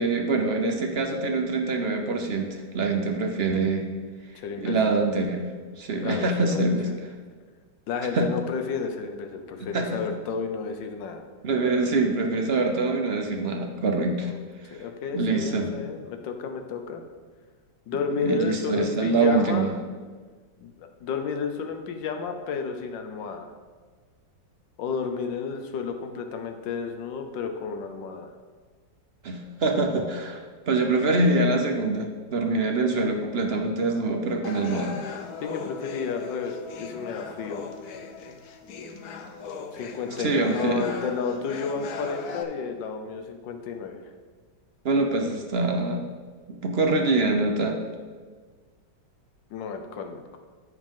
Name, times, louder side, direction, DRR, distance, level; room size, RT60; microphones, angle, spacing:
voice 1, 0.0-3.9 4.6-5.5 5.8-6.9 8.1-8.3 9.6-10.0 11.4-14.3 14.6-14.8 15.1-15.7 18.2-19.7 29.2-35.0 40.2-40.9 44.8-46.0 46.5-47.8, right 3 dB, 55° right, 3 dB, 0.7 m, -25 dB
voice 2, 4.3-4.8 6.0-7.0 7.9-11.2 14.2-14.4 14.7-17.0 17.9-19.7 20.6-23.5 24.8-28.3 35.4-37.6 39.7-44.0 49.5-50.4, left 5 dB, 80° left, 6 dB, 1.5 m, -31 dB
sound 1, 34.4-42.4, left 5 dB, 65° left, 1.1 m, -38 dB
13.5 x 5.0 x 3.7 m, 1.5 s
omnidirectional pair, 2.0 m